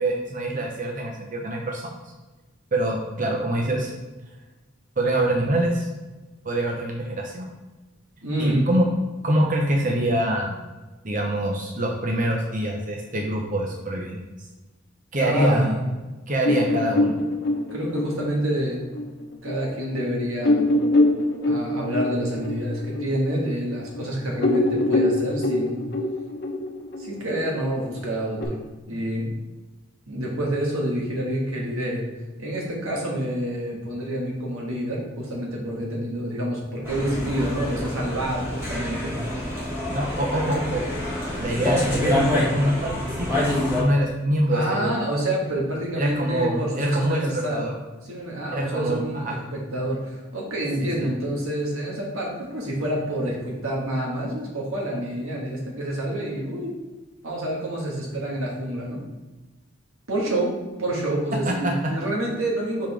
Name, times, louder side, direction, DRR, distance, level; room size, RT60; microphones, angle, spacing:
voice 1, 0.0-1.9 2.7-3.9 5.0-5.9 6.4-7.5 8.4-8.9 9.2-10.6 11.0-14.2 15.1-15.8 16.3-17.2 39.9-40.8 41.4-43.5 43.8-44.9 46.0-47.7 48.5-49.3 50.8-51.1 61.3-61.9, right 1 dB, 40° right, 0 dB, 0.7 m, -25 dB
voice 2, 8.2-8.7 15.2-15.9 17.6-18.8 19.4-20.6 21.4-25.8 27.0-29.3 30.1-32.1 32.4-39.2 39.4-39.6 44.5-47.7 48.1-56.7 57.2-59.0 60.1-62.9, right 1 dB, 85° right, -2 dB, 1.6 m, -28 dB
sound 1, 16.4-19.5 19.9-20.0 20.4-24.0 24.3-28.4, left 2 dB, 50° left, 0.9 m, -24 dB
sound 2, 36.8-43.8, left 1 dB, 15° right, 1.7 m, -26 dB
5.5 x 5.2 x 3.4 m, 1.2 s
head